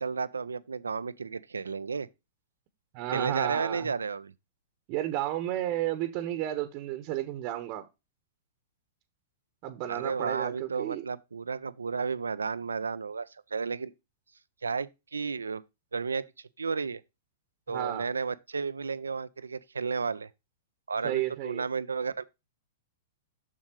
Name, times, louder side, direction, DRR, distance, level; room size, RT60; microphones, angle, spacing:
voice 1, 0.0-2.1 3.1-4.3 9.9-13.3 13.5-13.9 14.6-15.6 15.9-16.2 16.6-17.0 17.7-20.3 20.9-22.2, right 5 dB, 85° right, 0.5 m, -32 dB
voice 2, 2.9-3.9 4.9-7.8 9.6-11.0 17.7-18.1 21.0-21.6, right 14 dB, 45° right, 1.0 m, -32 dB
7.5 x 6.4 x 3.0 m
hypercardioid pair, 110°, 0 cm